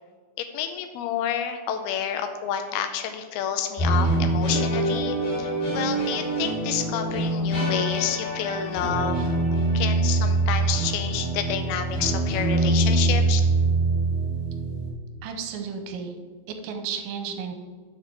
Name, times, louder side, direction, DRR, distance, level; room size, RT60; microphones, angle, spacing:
voice 1, 0.4-9.2 9.7-13.4, left 8 dB, 85° left, 7 dB, 2.2 m, -29 dB
sound 1, 3.8-14.9, right 2 dB, 55° left, 4.2 m, -24 dB
voice 2, 15.2-16.2 16.5-17.5, right 6 dB, 80° right, 5 dB, 2.9 m, -33 dB
7.2 x 5.9 x 5.9 m, 1.5 s
omnidirectional pair, 5.2 m